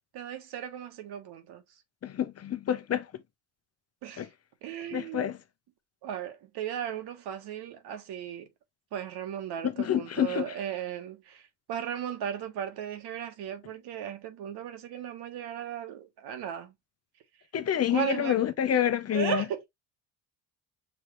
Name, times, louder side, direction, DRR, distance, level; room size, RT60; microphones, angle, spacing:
voice 1, 0.1-1.6 4.0-4.3 4.6-5.3 6.0-8.5 8.9-16.7 17.9-18.4 19.1-19.7, right 9 dB, 65° right, 1.5 m, -36 dB
voice 2, 2.0-3.1 4.2-4.3 4.9-5.4 9.6-10.6 17.5-19.4, left 10 dB, 35° left, 0.9 m, -28 dB
5.6 x 3.0 x 3.1 m
supercardioid pair, 85°, 41 cm